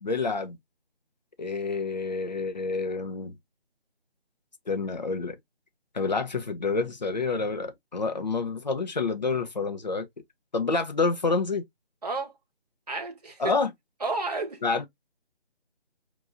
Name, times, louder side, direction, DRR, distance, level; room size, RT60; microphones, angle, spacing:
voice 1, 0.0-0.6 1.4-3.3 4.7-5.4 5.9-10.1 10.5-11.6 13.4-13.7 14.6-14.9, left 4 dB, 40° left, 0.7 m, -28 dB
voice 2, 12.0-12.3 12.9-13.5 14.0-14.6, right 3 dB, 40° right, 0.9 m, -31 dB
4.5 x 2.5 x 2.5 m
figure-of-eight pair, 170°, 33 cm